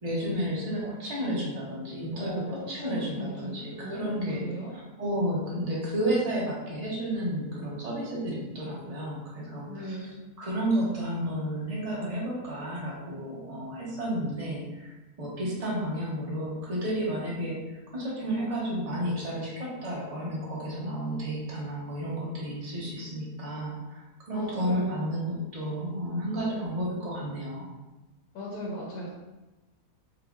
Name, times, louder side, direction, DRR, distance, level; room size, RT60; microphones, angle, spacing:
voice 1, 0.0-10.0 10.4-14.9 15.2-27.7, right 1 dB, 35° right, -5 dB, 0.6 m, -32 dB
voice 2, 2.1-4.7 9.7-10.2 24.3-25.2 28.3-29.1, equal, 80° left, -4 dB, 1.2 m, -37 dB
5.1 x 2.2 x 2.3 m, 1.1 s
omnidirectional pair, 1.6 m